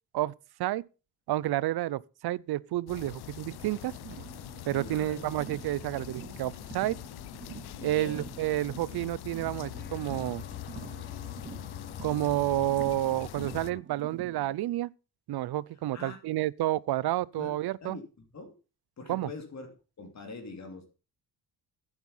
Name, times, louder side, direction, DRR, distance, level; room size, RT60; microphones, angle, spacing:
voice 1, 1.3-3.9 4.7-7.0 7.8-10.4 12.0-14.9 15.3-18.0 19.1-19.3, right 15 dB, 70° right, 0.6 m, -30 dB
sound 1, 2.9-13.7, left 15 dB, 75° left, 0.6 m, -43 dB
Car, 3.4-14.6, right 8 dB, 30° right, 0.5 m, -48 dB
voice 2, 4.7-5.2 7.8-8.2 15.9-16.2 17.4-17.5 17.8-18.5 19.0-20.9, left 3 dB, 45° left, 2.8 m, -43 dB
sound 2, 9.8-13.8, left 7 dB, 25° left, 0.5 m, -46 dB
11.0 x 8.1 x 5.5 m
cardioid pair, 110°, 39 cm